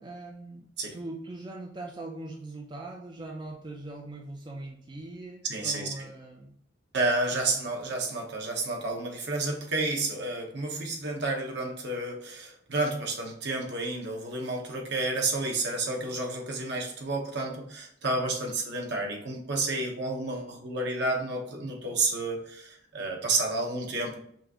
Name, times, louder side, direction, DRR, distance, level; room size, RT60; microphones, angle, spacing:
voice 1, 0.0-6.6 7.3-7.6 18.4-18.6 23.9-24.0, right 2 dB, 25° right, 0 dB, 0.4 m, -41 dB
voice 2, 5.5-6.1 6.9-24.2, right 2 dB, 65° right, 0 dB, 1.0 m, -30 dB
5.7 x 2.5 x 2.9 m, 0.66 s
head